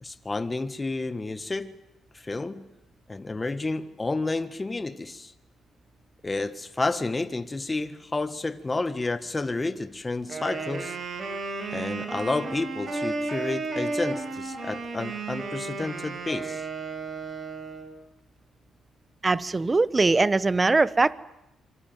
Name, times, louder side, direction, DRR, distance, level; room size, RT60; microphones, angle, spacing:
voice 1, 0.0-1.7 2.1-2.6 3.1-5.3 6.2-11.0 11.7-16.7, left 3 dB, 20° left, 1.6 m, -30 dB
Wind instrument woodwind instrument, 10.2-18.0, right 3 dB, 50° right, 5.7 m, -33 dB
voice 2, 19.2-21.1, right 3 dB, 25° right, 1.1 m, -21 dB
26.0 x 24.5 x 9.4 m
cardioid pair, 90°, 0 cm